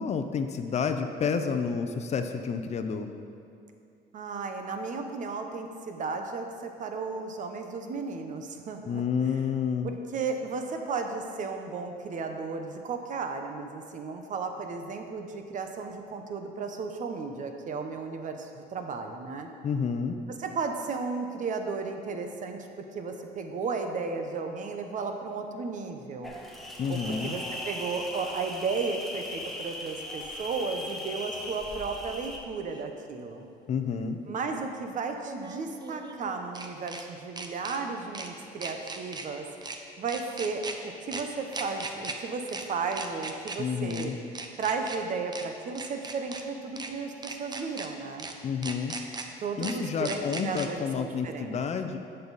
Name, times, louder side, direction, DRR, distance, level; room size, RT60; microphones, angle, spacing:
voice 1, 0.0-3.1 8.8-9.9 19.6-20.2 26.8-27.4 33.7-34.2 43.6-44.2 48.4-48.9 49.6-52.0, left 6 dB, 40° left, 7 dB, 0.6 m, -30 dB
voice 2, 4.1-9.0 9.8-19.5 20.4-22.7 22.9-26.3 26.9-33.5 34.3-39.4 40.0-44.1 44.6-48.3 49.4-51.6, right 4 dB, 50° right, 5 dB, 0.9 m, -34 dB
sound 1, 26.2-32.4, left 1 dB, ahead, 1.3 m, -39 dB
sound 2, 32.7-32.8 35.2-37.0 37.4-37.8 38.2-38.3 38.6-39.3 39.6-39.8 40.1-40.8 41.1-41.2 41.5-42.2 42.5-42.6 42.9-43.6 43.9-44.1 44.4-45.0 45.3-45.5 45.8-46.4 46.8-46.9 47.2-47.9 48.2-48.3 48.6-49.3 49.6-49.7 50.1-50.7, right 3 dB, 25° right, 0.8 m, -38 dB
10.5 x 6.8 x 4.1 m, 2.5 s
cardioid pair, 110°, 17 cm